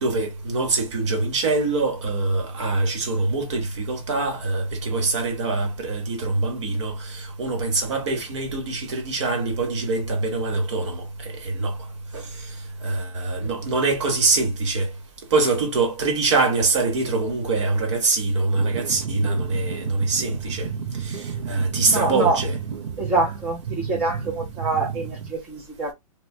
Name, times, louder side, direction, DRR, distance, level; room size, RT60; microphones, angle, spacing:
voice 1, 0.0-11.7 12.1-12.2 12.8-14.9 15.3-20.7 21.1-21.2 21.5-22.5, right 3 dB, 50° right, 1.2 m, -24 dB
sound 1, 18.5-25.3, right 7 dB, 90° right, 0.5 m, -32 dB
voice 2, 21.9-22.5 23.0-25.9, right 3 dB, 10° right, 0.5 m, -25 dB
3.0 x 2.2 x 2.6 m
hypercardioid pair, 165°, 19 cm